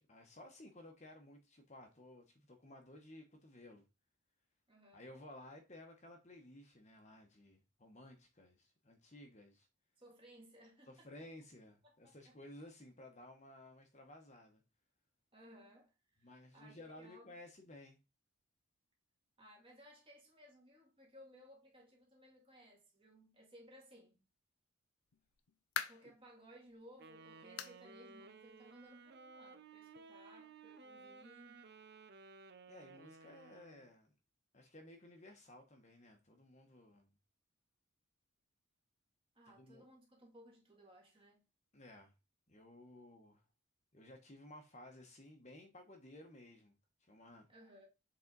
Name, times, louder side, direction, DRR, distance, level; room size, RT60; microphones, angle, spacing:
voice 1, 0.1-3.8 4.9-9.7 10.9-14.6 16.2-18.0 32.7-34.1 34.5-37.1 39.5-39.8 41.7-42.1 42.5-43.4 43.9-46.7 47.0-47.5, left 1 dB, 30° left, 1.1 m, -56 dB
voice 2, 4.7-5.1 10.0-11.1 11.8-12.4 15.3-15.9 16.2-17.3 19.4-24.2 25.8-31.7 39.4-41.4 47.5-47.9, equal, 25° right, 2.0 m, -61 dB
sound 1, 25.1-26.2 26.7-26.8 27.6-27.8 28.2-28.3 28.8-28.9 30.0-30.1, left 8 dB, 80° left, 0.6 m, -43 dB
Wind instrument woodwind instrument, 27.0-33.9, right 4 dB, 50° right, 0.6 m, -57 dB
7.3 x 4.0 x 4.0 m
head